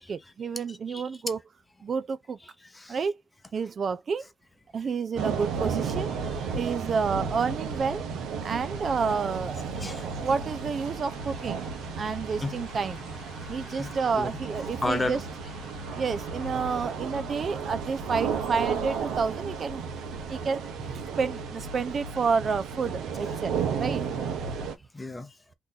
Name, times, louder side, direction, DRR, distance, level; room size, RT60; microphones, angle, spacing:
voice 1, 0.0-1.4 1.8-2.4 2.9-3.2 3.5-4.3 4.7-6.1 6.5-8.1 8.4-9.6 10.1-11.7 12.0-15.2 15.9-19.8 20.3-24.0, right 5 dB, 45° right, 0.4 m, -30 dB
voice 2, 0.7-1.0 2.4-3.0 6.3-6.6 9.8-10.2 12.4-12.5 13.5-14.3 14.8-15.2 20.3-20.4 24.9-25.4, left 2 dB, 15° left, 0.8 m, -34 dB
sound 1, 5.2-24.8, right 6 dB, 85° right, 0.9 m, -33 dB
sound 2, 8.5-19.7, left 6 dB, 60° left, 0.9 m, -50 dB
2.9 x 2.6 x 3.6 m
cardioid pair, 90°, 0 cm